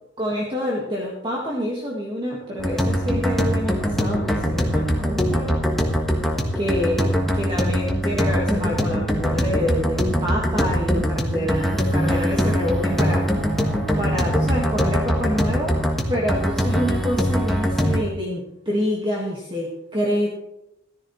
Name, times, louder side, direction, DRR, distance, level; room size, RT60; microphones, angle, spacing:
voice 1, 0.2-5.6 6.5-13.3 14.0-15.8 16.1-20.3, equal, 25° right, -3 dB, 1.7 m, -27 dB
sound 1, 2.6-18.0, equal, ahead, 1.4 m, -22 dB
14.0 x 13.5 x 3.2 m, 0.84 s
head